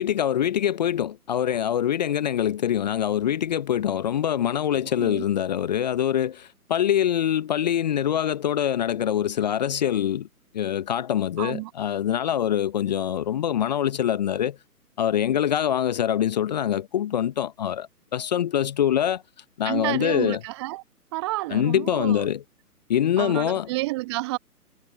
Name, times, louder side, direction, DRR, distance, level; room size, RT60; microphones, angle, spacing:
voice 1, 0.0-10.3 10.5-14.6 15.0-19.2 19.6-20.4 21.5-22.4 22.9-23.7, left 10 dB, 25° left, 0.9 m, -24 dB
voice 2, 11.4-11.7 19.6-20.8 21.1-22.3 23.2-24.4, right 20 dB, 15° right, 1.1 m, -30 dB
figure-of-eight pair, 135°, 47 cm